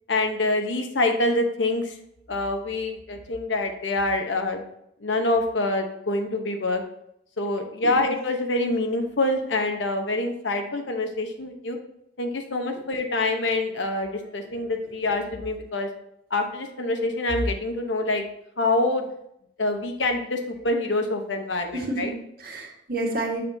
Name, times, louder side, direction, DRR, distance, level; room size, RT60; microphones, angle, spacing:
voice 1, 0.1-1.9 2.3-4.6 5.0-6.8 7.4-11.8 12.2-15.9 16.3-18.2 18.6-19.1 19.6-22.1, left 2 dB, 70° left, 4 dB, 0.9 m, -26 dB
voice 2, 14.2-14.6 21.7-23.4, right 2 dB, 50° right, 0 dB, 1.5 m, -31 dB
7.1 x 6.7 x 2.7 m, 0.76 s
head